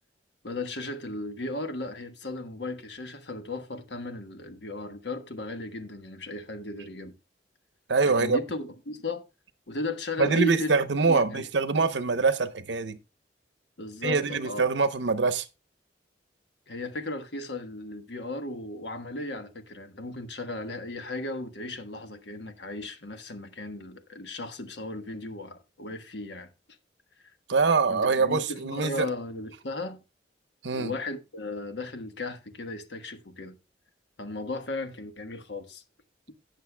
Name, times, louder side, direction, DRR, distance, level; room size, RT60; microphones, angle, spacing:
voice 1, 0.4-7.1 8.0-9.2 9.7-10.7 11.1-11.4 11.7-11.9 13.8-14.6 16.7-26.5 27.2-27.3 27.9-30.0 30.7-33.6 34.2-35.8, left 2 dB, 75° left, 1.3 m, -36 dB
voice 2, 7.9-8.4 10.2-13.0 14.0-15.5 27.5-29.1 30.6-30.9, right 4 dB, 80° right, 0.8 m, -24 dB
18.0 x 6.7 x 2.2 m
head